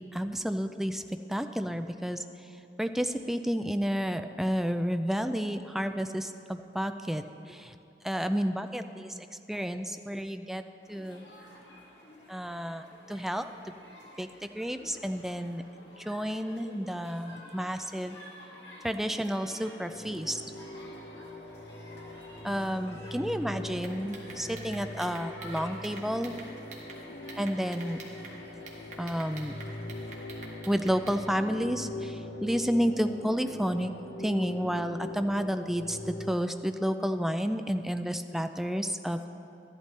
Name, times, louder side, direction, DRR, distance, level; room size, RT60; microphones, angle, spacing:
voice 1, 0.1-1.0 1.3-2.2 2.8-7.8 8.0-9.2 9.5-10.6 10.9-11.3 12.3-13.4 14.2-15.6 16.0-18.2 18.8-20.4 22.4-26.4 27.4-28.0 29.0-29.5 30.7-33.9 34.2-39.3, equal, ahead, 8 dB, 0.3 m, -31 dB
sound 1, 10.8-30.3, left 1 dB, 85° left, 2.2 m, -52 dB
sound 2, 19.9-36.3, left 1 dB, 50° left, 0.7 m, -42 dB
sound 3, 23.8-27.0 27.3-28.3 28.7-31.2, right 3 dB, 45° right, 1.5 m, -46 dB
13.5 x 11.0 x 3.3 m, 2.8 s
head